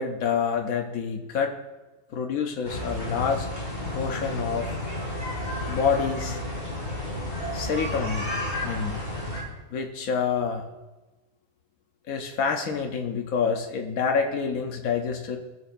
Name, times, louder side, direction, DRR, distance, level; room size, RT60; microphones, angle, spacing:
voice 1, 0.0-1.5 2.1-3.5 3.9-4.7 5.7-6.4 7.5-8.3 8.6-9.0 9.7-10.6 12.1-15.4, left 6 dB, 80° left, 3 dB, 1.4 m, -27 dB
sound 1, 2.6-9.4, left 1 dB, 35° left, 3.4 m, -32 dB
18.5 x 6.8 x 2.6 m, 1.1 s
omnidirectional pair, 1.4 m